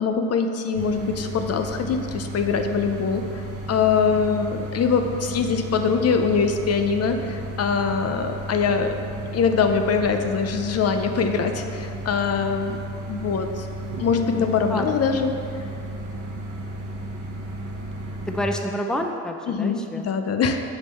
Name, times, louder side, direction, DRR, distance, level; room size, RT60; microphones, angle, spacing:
voice 1, 0.0-9.0 9.3-12.8 13.1-13.7 14.0-15.3 15.6-15.7 19.5-20.6, left 5 dB, 55° left, 6 dB, 0.6 m, -23 dB
sound 1, 0.7-18.5, right 1 dB, 75° right, 1.2 m, -34 dB
voice 2, 14.3-15.1 18.3-20.1, equal, ahead, 3 dB, 0.6 m, -29 dB
7.7 x 4.5 x 5.5 m, 2.5 s
cardioid pair, 90°, 30 cm